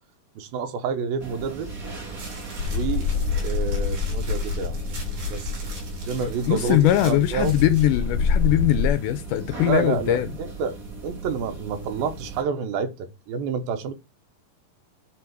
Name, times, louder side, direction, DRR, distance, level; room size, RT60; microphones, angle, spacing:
voice 1, 0.4-1.7 2.7-3.1 3.4-4.8 5.3-5.6 6.0-6.8 7.1-7.5 9.6-10.8 11.0-13.9, right 6 dB, 90° right, 2.9 m, -28 dB
sound 1, 1.2-12.4, right 3 dB, 30° right, 1.8 m, -37 dB
sound 2, 2.2-7.9, right 3 dB, 55° right, 4.8 m, -43 dB
sound 3, 2.6-8.9, left 5 dB, 65° left, 1.4 m, -27 dB
voice 2, 6.5-10.3, left 13 dB, 80° left, 1.9 m, -21 dB
9.9 x 3.5 x 4.7 m
omnidirectional pair, 4.1 m